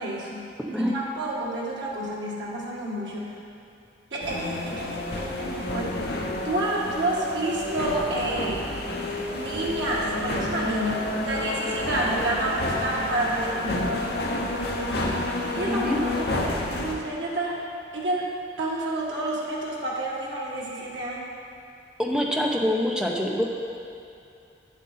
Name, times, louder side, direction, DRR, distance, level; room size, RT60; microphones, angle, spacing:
voice 1, 0.0-3.4 4.1-8.6 9.3-13.9 15.6-17.6 17.9-18.3 18.6-21.3, right 1 dB, 80° right, -5 dB, 1.6 m, -30 dB
sound 1, 4.2-16.9, left 1 dB, 55° left, 0.9 m, -29 dB
voice 2, 15.7-16.0 22.0-23.4, equal, 5° right, -1 dB, 0.7 m, -25 dB
8.9 x 7.4 x 4.2 m, 2.6 s
head